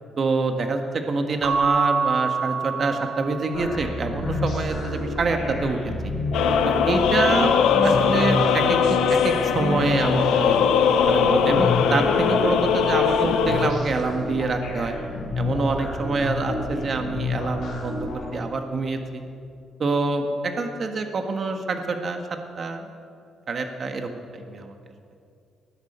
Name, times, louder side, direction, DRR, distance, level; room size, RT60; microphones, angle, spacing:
voice 1, 0.2-6.1 6.6-10.6 11.0-15.0 15.3-19.2 19.8-22.2 22.6-22.9 23.5-24.7, right 3 dB, 45° right, 5 dB, 1.5 m, -26 dB
Keyboard (musical) / Bell, 1.4-3.8, right 5 dB, 75° right, 1.2 m, -26 dB
sound 1, 3.5-18.3, left 2 dB, 70° left, 4.0 m, -30 dB
sound 2, 6.3-13.7, left 7 dB, 85° left, 0.8 m, -20 dB
19.0 x 11.0 x 4.4 m, 2.4 s
cardioid pair, 90°, 0 cm